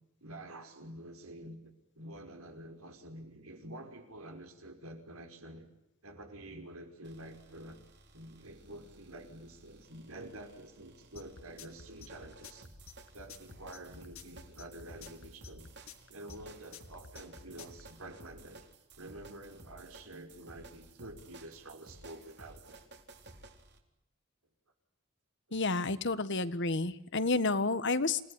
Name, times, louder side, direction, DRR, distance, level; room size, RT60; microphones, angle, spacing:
voice 1, 0.2-5.7 6.0-7.8 8.1-12.7 13.1-15.7 16.1-18.7 19.0-22.8, right 1 dB, 85° right, 5 dB, 5.6 m, -48 dB
sound 1, 7.0-23.8, right 2 dB, 55° right, 4.1 m, -56 dB
sound 2, 11.2-17.8, left 5 dB, 75° left, 2.6 m, -51 dB
voice 2, 25.5-28.2, left 3 dB, 55° left, 13 dB, 1.6 m, -30 dB
28.5 x 18.5 x 10.0 m, 0.85 s
head